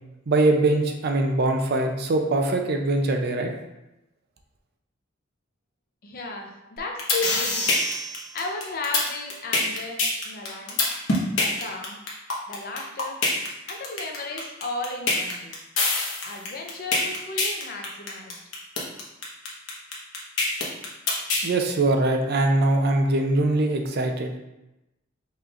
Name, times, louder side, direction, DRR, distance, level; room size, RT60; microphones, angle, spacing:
voice 1, 0.3-3.5 21.4-24.4, right 2 dB, 55° right, 4 dB, 0.5 m, -22 dB
voice 2, 6.0-7.7 8.3-10.8 11.4-12.0 12.5-13.2 13.7-15.6 16.2-18.4, left 2 dB, 50° left, 2 dB, 0.6 m, -34 dB
sound 1, 6.8-21.5, left 2 dB, 80° left, 1.0 m, -24 dB
5.5 x 3.1 x 2.4 m, 0.95 s
head